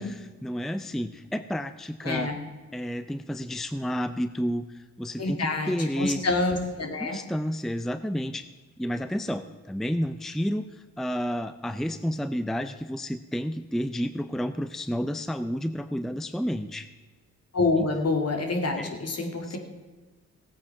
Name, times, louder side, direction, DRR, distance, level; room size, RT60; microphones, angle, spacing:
voice 1, 0.0-2.3 2.7-6.2 7.0-8.5 8.8-16.9 17.8-17.9 18.8-18.9 19.5-19.6, equal, ahead, 11 dB, 0.6 m, -31 dB
voice 2, 2.0-2.4 5.2-7.2 17.5-19.6, left 3 dB, 55° left, 3 dB, 2.6 m, -27 dB
16.5 x 8.7 x 5.8 m, 1.3 s
cardioid pair, 75°, 30 cm